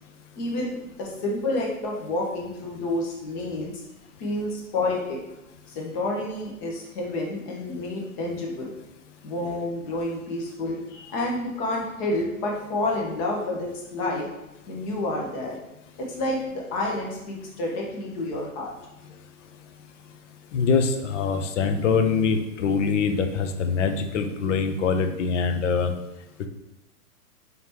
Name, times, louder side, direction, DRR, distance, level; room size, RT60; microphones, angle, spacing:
voice 1, 0.4-3.7 4.2-5.2 5.7-8.7 9.2-14.3 14.7-15.6 16.0-18.7, left 2 dB, 30° left, -1 dB, 0.9 m, -29 dB
voice 2, 20.5-25.9, left 5 dB, 55° left, 7 dB, 0.6 m, -24 dB
3.9 x 3.5 x 3.0 m, 0.93 s
hypercardioid pair, 145°, 45 cm